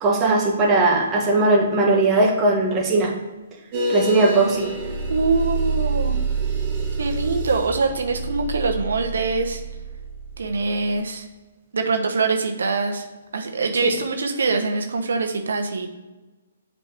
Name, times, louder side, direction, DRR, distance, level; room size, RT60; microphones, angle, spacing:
voice 1, 0.0-3.1 3.9-4.7, right 2 dB, 20° right, -2 dB, 1.4 m, -18 dB
sound 1, 3.7-10.9, right 3 dB, 35° right, 1.9 m, -27 dB
voice 2, 5.1-6.2 7.0-9.6 10.4-11.3 11.7-13.1 13.3-15.9, right 4 dB, 80° right, 4 dB, 0.9 m, -24 dB
7.3 x 4.2 x 3.4 m, 1.2 s
hypercardioid pair, 150°, 0 cm